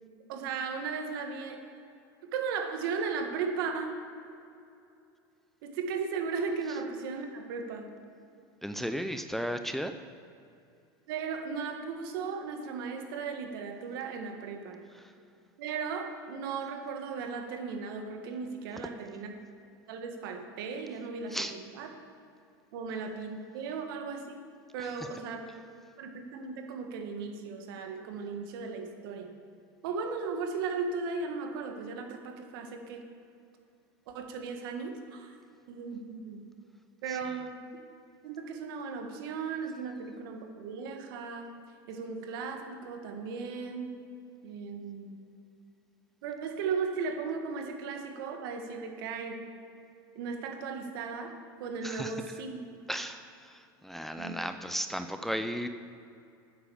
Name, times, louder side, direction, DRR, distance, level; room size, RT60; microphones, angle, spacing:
voice 1, 0.3-1.6 2.2-3.9 5.6-7.9 11.1-14.8 15.6-19.3 19.9-21.9 22.7-24.4 24.7-25.4 26.0-29.3 29.8-33.0 34.1-35.4 35.7-36.4 37.0-37.7 38.2-41.5 41.9-44.0 44.4-45.2 46.2-49.4 50.2-51.3 51.6-52.6 54.2-54.3, right 5 dB, 75° right, 4 dB, 1.9 m, -36 dB
voice 2, 8.6-9.9 15.0-15.1 21.3-21.5 37.1-37.2 51.8-52.1 52.9-55.7, equal, ahead, 7 dB, 0.6 m, -35 dB
9.7 x 8.6 x 7.2 m, 2.6 s
supercardioid pair, 105°, 12 cm